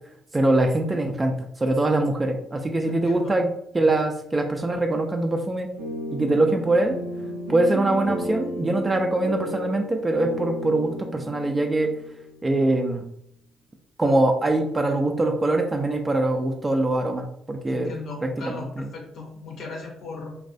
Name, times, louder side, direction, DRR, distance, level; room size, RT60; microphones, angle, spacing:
voice 1, 0.3-3.5 3.7-5.7 6.1-7.0 7.5-11.9 12.4-13.0 14.0-17.9 18.2-18.9, right 2 dB, 25° right, 4 dB, 0.3 m, -23 dB
voice 2, 2.8-3.3 17.7-20.4, left 3 dB, 65° left, 0 dB, 0.5 m, -38 dB
sound 1, 5.8-12.7, left 1 dB, 90° right, 0.6 m, -33 dB
2.2 x 2.1 x 2.5 m, 0.72 s
hypercardioid pair, 50°, 0 cm